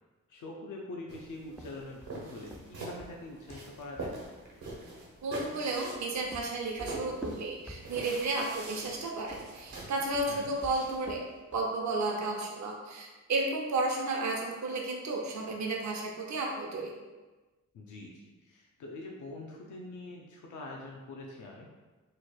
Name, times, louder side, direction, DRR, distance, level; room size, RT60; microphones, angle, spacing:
voice 1, 0.3-4.2 10.3-10.5 17.7-21.7, left 2 dB, 85° left, -1 dB, 0.5 m, -44 dB
sound 1, 1.1-11.1, right 2 dB, 85° right, 1.0 m, -45 dB
sound 2, 1.5-4.1 5.8-8.3 9.2-11.8, equal, 5° right, 0.3 m, -47 dB
voice 2, 5.2-11.2 11.5-16.9, right 2 dB, 70° right, 0 dB, 0.7 m, -33 dB
3.1 x 2.3 x 4.3 m, 1.2 s
cardioid pair, 80°, 29 cm